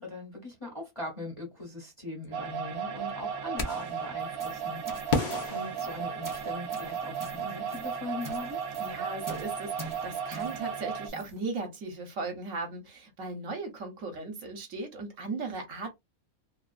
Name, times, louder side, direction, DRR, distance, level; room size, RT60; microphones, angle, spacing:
voice 1, 0.0-8.6, left 2 dB, 25° left, 0.8 m, -41 dB
sound 1, 2.3-11.1, right 7 dB, 85° right, 1.1 m, -35 dB
sound 2, 3.6-4.0 5.1-6.6, left 4 dB, 75° left, 0.4 m, -32 dB
sound 3, 4.2-11.4, right 2 dB, 30° right, 0.3 m, -46 dB
voice 2, 8.8-15.9, right 3 dB, 65° right, 1.1 m, -37 dB
2.9 x 2.4 x 2.4 m
omnidirectional pair, 1.5 m